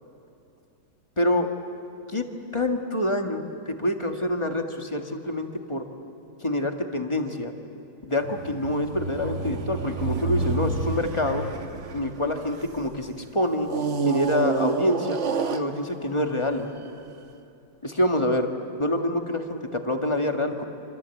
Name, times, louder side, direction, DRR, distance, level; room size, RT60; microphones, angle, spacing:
voice 1, 1.2-1.5 2.1-2.2 2.5-5.8 6.4-7.5 8.1-11.5 11.9-13.7 14.0-15.2 15.5-16.7 17.8-18.5 18.8-20.6, left 1 dB, 15° left, 5 dB, 1.5 m, -26 dB
sound 1, 8.2-12.9 13.6-16.2 16.9-17.0, right 4 dB, 45° right, 1.3 m, -29 dB
26.5 x 26.0 x 8.4 m, 2.8 s
omnidirectional pair, 1.9 m